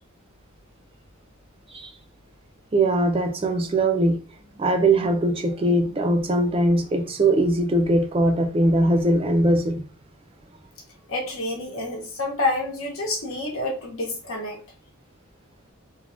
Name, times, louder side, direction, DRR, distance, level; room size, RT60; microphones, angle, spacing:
voice 1, 2.7-4.2 4.5-9.9, right 1 dB, 25° right, 0.3 m, -21 dB
voice 2, 11.1-14.6, left 2 dB, 65° left, 0.8 m, -28 dB
3.1 x 2.2 x 2.5 m
head